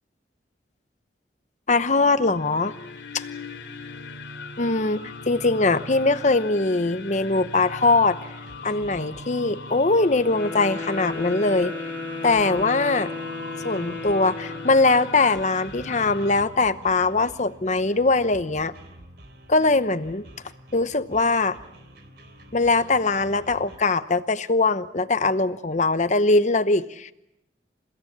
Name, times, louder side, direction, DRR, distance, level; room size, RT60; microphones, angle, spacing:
voice 1, 1.7-2.7 3.1-3.2 4.6-8.2 8.6-11.7 12.2-13.1 13.6-18.7 19.5-20.2 20.7-21.6 22.5-27.1, left 3 dB, 40° left, 12 dB, 0.9 m, -21 dB
sound 1, 2.2-16.4, left 3 dB, 85° left, 2.7 m, -39 dB
sound 2, 8.4-23.8, equal, 65° right, 3.3 m, -49 dB
Wind instrument woodwind instrument, 10.2-14.8, left 3 dB, 10° left, 6.0 m, -34 dB
29.5 x 16.5 x 8.6 m, 0.87 s
head